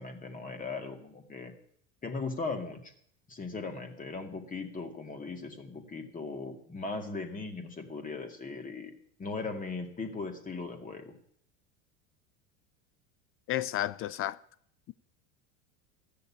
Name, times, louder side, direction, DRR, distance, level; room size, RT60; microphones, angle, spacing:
voice 1, 0.0-1.5 2.0-2.9 3.3-8.9 9.2-11.2, left 3 dB, 20° left, 2.2 m, -38 dB
voice 2, 13.5-14.4, left 13 dB, 35° left, 0.4 m, -31 dB
14.0 x 6.8 x 8.5 m
supercardioid pair, 120°, 39 cm